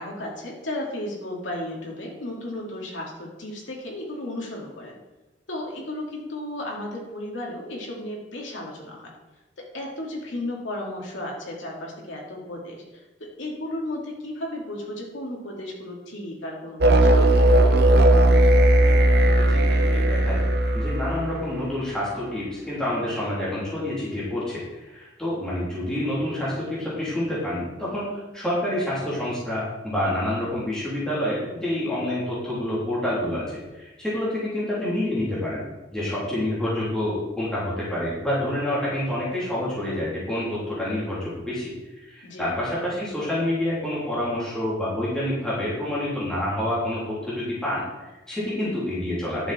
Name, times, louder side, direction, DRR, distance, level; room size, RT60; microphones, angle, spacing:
voice 1, 0.0-5.0 5.5-9.1 9.6-17.6 42.2-42.4, left 1 dB, 75° left, -2 dB, 2.4 m, -34 dB
sound 1, 16.8-21.4, right 1 dB, 55° right, 0.8 m, -17 dB
voice 2, 18.9-35.6 35.9-49.5, left 1 dB, 5° left, -9 dB, 3.2 m, -28 dB
11.0 x 6.8 x 4.3 m, 1.1 s
head